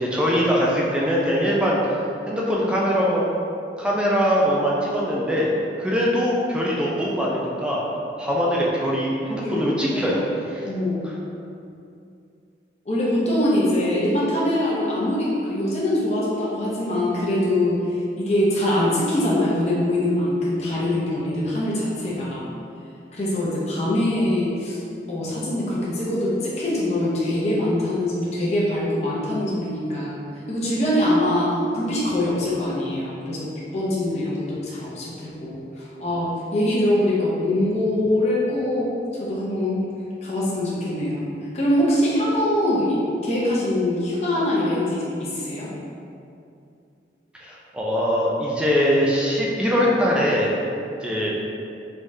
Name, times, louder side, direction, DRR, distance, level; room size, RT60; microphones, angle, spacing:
voice 1, 0.0-2.0 2.3-3.2 3.8-5.5 5.8-7.8 8.2-10.2 10.5-10.7 47.4-50.5 50.9-51.3, equal, 5° right, -5 dB, 0.4 m, -22 dB
voice 2, 10.6-11.0 12.9-22.4 23.1-24.8 25.1-33.5 33.7-38.9 39.2-39.8 40.2-41.3 41.5-45.7, left 1 dB, 35° left, -7 dB, 0.6 m, -23 dB
3.4 x 3.3 x 2.6 m, 2.6 s
head